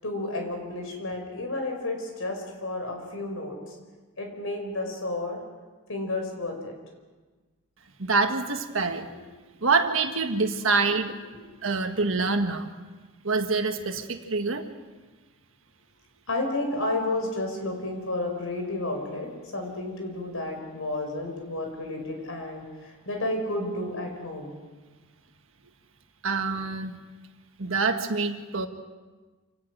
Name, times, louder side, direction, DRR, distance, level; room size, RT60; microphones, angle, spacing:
voice 1, 0.0-3.8 4.2-5.4 5.9-6.7 11.3-11.4 16.3-24.6, left 2 dB, 70° left, 3 dB, 5.3 m, -31 dB
voice 2, 8.0-9.1 9.6-11.1 11.6-12.7 13.2-14.7 26.2-27.0 27.6-28.7, right 4 dB, 65° right, 6 dB, 1.6 m, -26 dB
27.5 x 18.0 x 6.3 m, 1.3 s
head